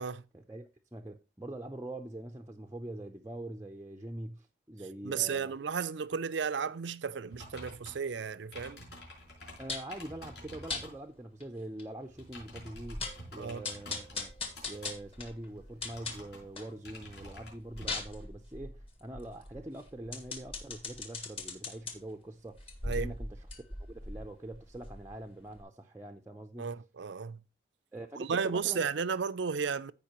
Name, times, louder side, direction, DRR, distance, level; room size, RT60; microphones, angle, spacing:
voice 1, 0.3-5.5 9.6-13.1 13.3-14.3 14.6-22.7 22.9-23.6 23.9-26.7 27.9-28.9, right 1 dB, 15° right, 0.5 m, -44 dB
voice 2, 5.0-8.8 13.4-13.6 22.8-23.1 26.6-27.4 28.2-29.9, right 6 dB, 75° right, 0.5 m, -34 dB
sound 1, 7.3-11.0 12.0-17.9, left 1 dB, 60° left, 5.1 m, -50 dB
sound 2, 9.7-10.0 10.7-10.9 11.4-11.5 11.8-11.9 12.3-12.4 12.8-13.3 13.6-16.7 17.1-21.9 22.5-25.2 25.6-25.7, left 3 dB, 30° left, 1.8 m, -40 dB
15.0 x 5.2 x 3.0 m
head